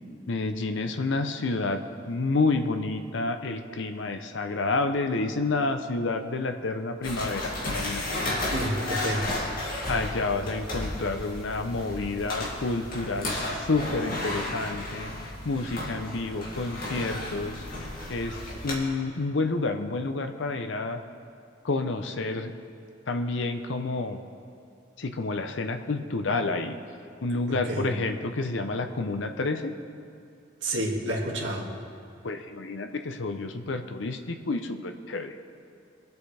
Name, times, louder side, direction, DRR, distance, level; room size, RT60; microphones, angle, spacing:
voice 1, 0.3-1.8 2.1-8.0 9.9-17.7 18.1-21.0 21.6-22.5 23.1-24.2 25.0-26.8 27.2-29.8 32.2-35.3, left 3 dB, 75° left, 7 dB, 0.7 m, -29 dB
sound 1, 7.0-18.7, left 1 dB, 50° left, 2.4 m, -33 dB
voice 2, 8.5-9.3 27.5-27.9 30.6-31.7, right 1 dB, 70° right, -4 dB, 2.0 m, -29 dB
23.0 x 8.1 x 3.4 m, 2.5 s
head